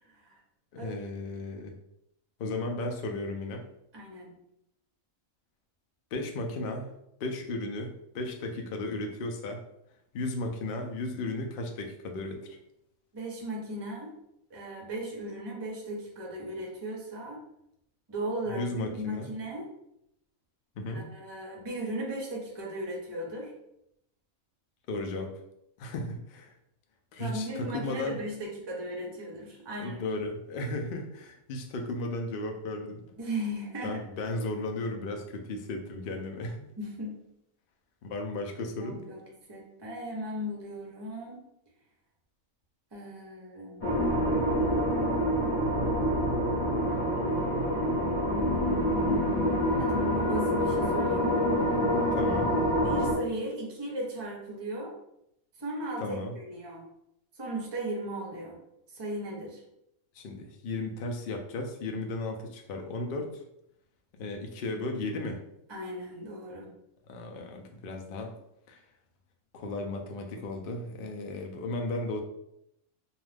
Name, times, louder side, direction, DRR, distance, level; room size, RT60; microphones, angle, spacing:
voice 1, 0.7-1.7 2.4-3.7 6.1-6.9 7.2-9.6 10.1-12.5 18.4-19.3 20.8-21.0 24.9-25.3 25.8-26.5 27.1-28.3 29.8-33.0 33.8-36.7 38.0-39.0 51.9-52.5 56.0-56.4 60.1-63.4 64.2-65.4 67.1-68.3 68.7-68.8 69.5-72.2, left 2 dB, 90° left, 2 dB, 0.4 m, -35 dB
voice 2, 3.9-4.3 13.1-14.1 14.5-17.4 18.1-19.7 20.9-23.5 27.2-30.0 33.2-34.0 36.8-37.1 38.8-39.2 39.5-41.4 42.9-43.8 46.9-47.4 49.8-51.5 52.8-54.9 55.6-56.8 57.3-58.6 58.9-59.6 65.7-66.7, right 1 dB, 30° right, -2 dB, 0.5 m, -37 dB
sound 1, 43.8-53.1, equal, 40° left, 0.9 m, -26 dB
2.4 x 2.3 x 3.2 m, 0.79 s
omnidirectional pair, 1.5 m